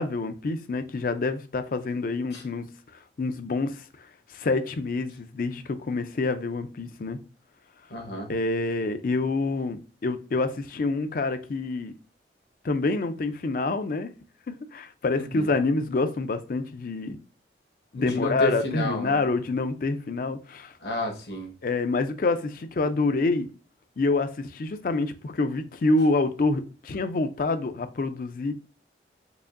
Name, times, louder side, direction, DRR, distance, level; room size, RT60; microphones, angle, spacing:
voice 1, 0.0-2.7 3.2-7.2 8.3-11.9 12.6-14.1 14.7-17.2 17.9-20.7 21.6-23.5 24.0-28.5, left 3 dB, 50° left, 0.4 m, -27 dB
voice 2, 7.9-8.3 15.1-15.5 18.0-19.2 20.8-21.5, left 1 dB, 65° left, 1.1 m, -31 dB
4.8 x 2.6 x 2.5 m
head